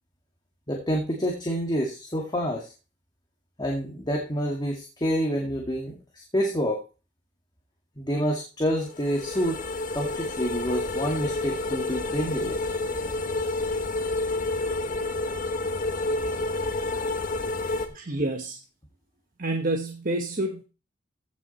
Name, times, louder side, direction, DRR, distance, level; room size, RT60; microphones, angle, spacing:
voice 1, 0.7-2.7 3.6-6.8 8.0-9.6 9.9-12.6, equal, 25° left, 2.1 m, -28 dB
sound 1, 8.9-17.9, left 2 dB, 45° left, 1.4 m, -29 dB
voice 2, 17.9-18.6 19.4-20.6, right 2 dB, 50° right, 1.2 m, -28 dB
15.5 x 6.2 x 4.3 m
head